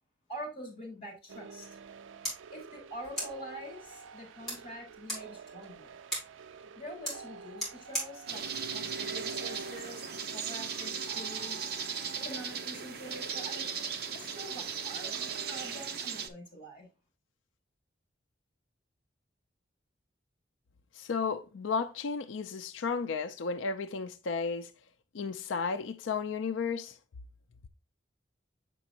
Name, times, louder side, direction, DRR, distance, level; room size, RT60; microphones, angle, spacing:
voice 1, 0.3-1.8 2.5-5.9 6.6-10.0 10.3-13.7 14.1-16.9, equal, 30° left, 4.1 m, -45 dB
sound 1, 1.3-15.8, right 4 dB, 90° right, 0.4 m, -47 dB
sound 2, 2.2-9.8, equal, ahead, 4.5 m, -42 dB
sound 3, 8.3-16.3, right 7 dB, 55° right, 0.8 m, -37 dB
voice 2, 20.9-24.7 25.1-27.0, left 5 dB, 90° left, 0.5 m, -33 dB
7.6 x 6.0 x 2.8 m
head